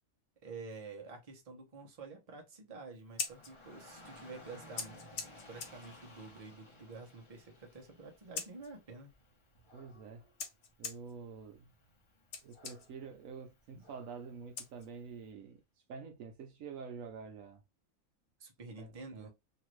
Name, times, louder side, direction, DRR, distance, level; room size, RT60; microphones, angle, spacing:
voice 1, 0.4-5.0 5.5-9.1 18.4-19.3, right 3 dB, 30° right, 0.8 m, -49 dB
Scissors, 2.9-15.3, left 5 dB, 60° left, 1.0 m, -48 dB
Dog / Rain, 3.1-15.2, left 1 dB, 30° left, 0.7 m, -59 dB
voice 2, 9.7-10.2 10.8-11.7 12.4-15.6 15.9-17.6 18.8-19.3, right 5 dB, 75° right, 1.1 m, -47 dB
2.9 x 2.5 x 3.0 m
omnidirectional pair, 1.4 m